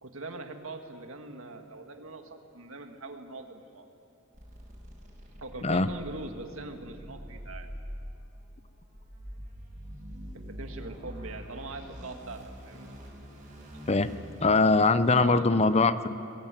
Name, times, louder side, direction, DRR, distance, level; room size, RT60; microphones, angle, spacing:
voice 1, 0.0-3.9 5.4-7.7 10.3-12.9 15.2-15.5, right 2 dB, 85° right, 5 dB, 1.9 m, -42 dB
sound 1, 4.3-15.2, equal, 40° right, 6.6 m, -45 dB
voice 2, 14.4-16.1, left 3 dB, 30° left, 13 dB, 0.7 m, -22 dB
22.0 x 20.5 x 9.1 m, 2.7 s
head